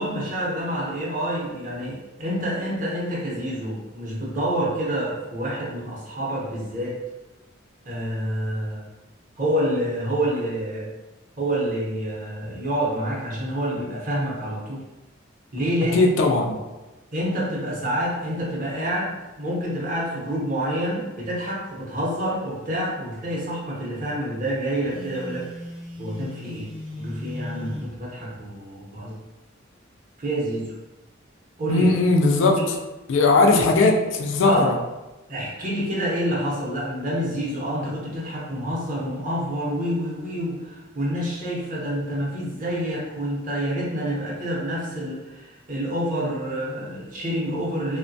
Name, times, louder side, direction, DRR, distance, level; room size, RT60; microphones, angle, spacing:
voice 1, 0.0-7.0 7.8-8.9 9.4-10.9 11.4-14.8 15.5-16.1 17.1-25.5 26.0-26.7 27.0-29.1 30.2-30.6 31.6-31.9 32.6-32.7 33.5-33.9 34.4-34.7 35.3-48.0, equal, 40° right, -5 dB, 0.7 m, -27 dB
voice 2, 15.9-16.6 31.7-32.6 33.1-33.9 34.2-34.8, left 3 dB, 65° left, 3 dB, 0.3 m, -18 dB
Telephone, 24.8-27.9, left 1 dB, 85° right, 0.9 m, -37 dB
2.9 x 2.1 x 2.6 m, 1.1 s
head